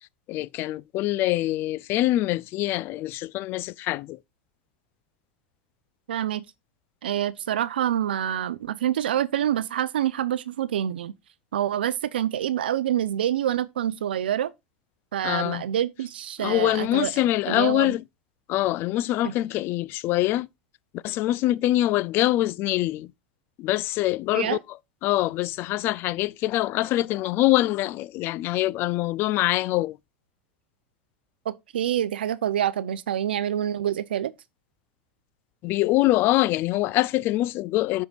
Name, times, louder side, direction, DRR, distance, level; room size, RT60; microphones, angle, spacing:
voice 1, 0.3-4.2 15.2-15.6 16.4-18.0 18.5-20.5 20.9-23.1 23.6-24.6 25.0-30.0 35.6-38.1, left 16 dB, 45° left, 0.4 m, -24 dB
voice 2, 6.1-6.4 7.0-11.1 11.5-14.5 15.1-17.1 17.5-17.9 19.2-19.3 24.3-24.6 31.5-34.3, right 11 dB, 85° right, 0.5 m, -26 dB
13.5 x 4.7 x 2.4 m
hypercardioid pair, 105°, 5 cm